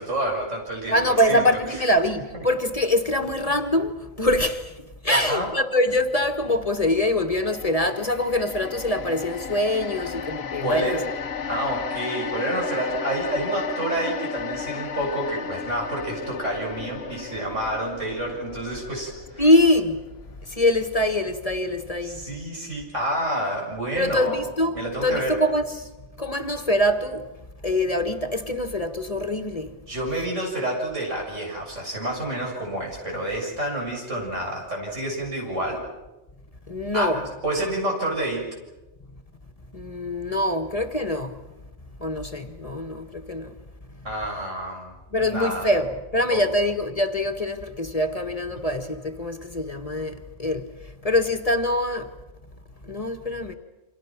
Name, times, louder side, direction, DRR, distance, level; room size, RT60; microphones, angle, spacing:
voice 1, 0.0-1.9 5.1-5.5 10.6-11.0 11.5-19.5 22.0-24.4 24.7-25.4 29.9-35.8 36.9-38.5 44.0-45.7 46.3-46.4, right 1 dB, 90° right, 7.7 m, -29 dB
voice 2, 0.9-11.0 19.4-20.0 20.4-22.2 23.9-25.9 26.2-27.3 27.6-29.7 36.7-37.2 39.7-41.4 42.0-43.5 45.1-52.1 52.8-53.5, left 1 dB, 30° left, 1.5 m, -24 dB
sound 1, 7.4-21.8 22.1-22.3, left 6 dB, 60° left, 1.2 m, -35 dB
29.0 x 26.0 x 6.0 m
omnidirectional pair, 1.2 m